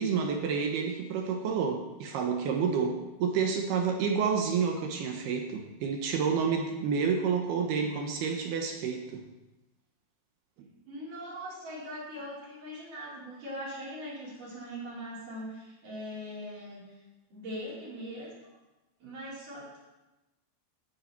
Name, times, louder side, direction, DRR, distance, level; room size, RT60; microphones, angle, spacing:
voice 1, 0.0-9.2 10.6-10.7, right 6 dB, 75° right, 3 dB, 2.5 m, -29 dB
voice 2, 10.9-16.8 17.3-18.3 19.0-19.8, equal, 40° right, -7 dB, 5.9 m, -41 dB
16.5 x 9.5 x 4.4 m, 1.1 s
omnidirectional pair, 5.7 m